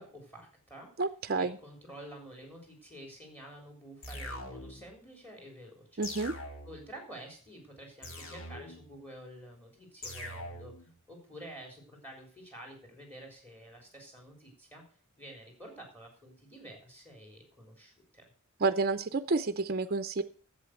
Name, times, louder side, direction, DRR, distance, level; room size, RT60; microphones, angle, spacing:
voice 1, 0.0-0.9 1.4-6.0 6.6-14.8 15.2-18.2, right 1 dB, 10° left, 2 dB, 3.6 m, -49 dB
voice 2, 1.0-1.5 6.0-6.3 18.6-20.2, right 3 dB, 45° right, 10 dB, 0.6 m, -29 dB
sound 1, 4.0-4.9 6.0-6.9 8.0-8.9 10.0-10.9, left 1 dB, 65° left, 2.6 m, -43 dB
11.0 x 7.6 x 6.5 m, 0.41 s
head